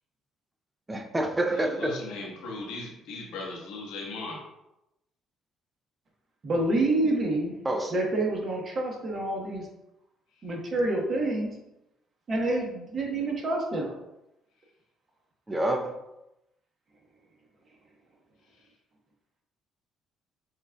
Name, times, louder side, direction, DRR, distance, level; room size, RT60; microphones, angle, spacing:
voice 1, 0.9-2.0 7.6-7.9 15.5-15.9, right 1 dB, 15° right, 4 dB, 0.5 m, -27 dB
voice 2, 1.5-4.4, left 2 dB, 90° left, -3 dB, 1.2 m, -38 dB
voice 3, 6.4-7.5 7.9-9.7 10.4-11.5 12.3-13.9, right 2 dB, 45° right, -1 dB, 1.1 m, -27 dB
6.1 x 2.5 x 2.3 m, 0.90 s
cardioid pair, 85°, 0 cm